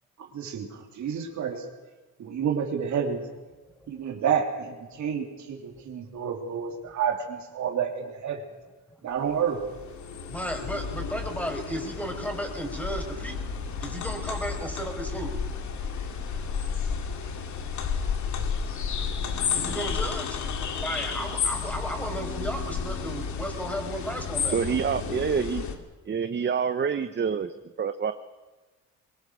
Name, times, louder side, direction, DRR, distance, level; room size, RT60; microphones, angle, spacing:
voice 1, 0.3-1.6 2.2-3.2 3.9-8.4 9.0-9.6, right 7 dB, 70° right, 3 dB, 3.3 m, -29 dB
sound 1, 9.3-25.8, left 6 dB, 70° left, 2.5 m, -32 dB
voice 2, 10.3-13.4 13.8-15.4 19.5-20.4 20.7-24.8, right 1 dB, 5° left, 4 dB, 5.1 m, -34 dB
voice 3, 24.5-25.6 26.1-28.1, right 6 dB, 35° right, 10 dB, 1.0 m, -27 dB
23.0 x 20.5 x 6.4 m, 1.2 s
cardioid pair, 90°, 30 cm